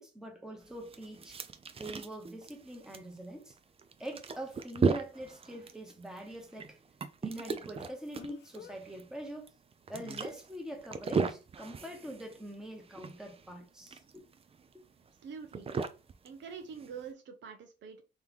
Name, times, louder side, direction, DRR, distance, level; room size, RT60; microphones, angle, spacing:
voice 1, 0.0-1.4 1.8-3.6 4.0-6.8 7.2-9.5 9.9-14.2 14.7-14.8, right 1 dB, 5° right, 1.1 m, -44 dB
sound 1, 0.6-17.1, right 5 dB, 30° right, 0.4 m, -37 dB
Speech, 2.8-2.9 8.1-8.8 10.0-10.3, left 9 dB, 60° left, 0.5 m, -49 dB
voice 2, 15.2-15.7 16.2-18.0, right 6 dB, 65° right, 0.8 m, -45 dB
3.3 x 2.9 x 3.6 m
cardioid pair, 90°, 20 cm